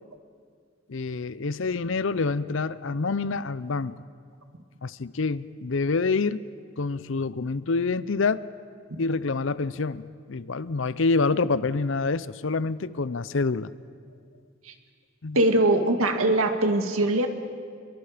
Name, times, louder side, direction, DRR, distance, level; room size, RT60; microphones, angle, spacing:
voice 1, 0.9-3.9 4.8-6.4 6.8-8.5 9.0-13.7 15.2-15.4, left 4 dB, 65° left, 16 dB, 0.6 m, -27 dB
voice 2, 15.3-17.3, right 1 dB, 80° right, 5 dB, 1.9 m, -21 dB
27.5 x 22.5 x 5.1 m, 2.1 s
head